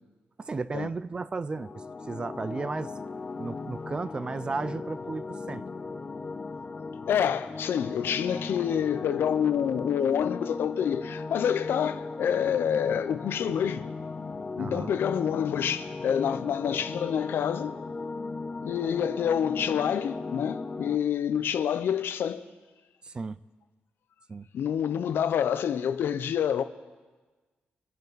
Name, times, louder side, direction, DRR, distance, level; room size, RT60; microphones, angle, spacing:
voice 1, 0.4-1.7 2.1-2.9 3.4-5.6 14.6-14.9 23.0-23.4 24.3-24.5, right 4 dB, 25° right, 0.3 m, -34 dB
sound 1, 1.5-21.0, left 3 dB, 30° left, 0.5 m, -37 dB
voice 2, 7.1-13.9 14.6-17.8 18.6-22.5 24.5-26.6, left 8 dB, 75° left, 0.7 m, -27 dB
26.0 x 10.5 x 4.1 m
wide cardioid pair, 175°, 4 cm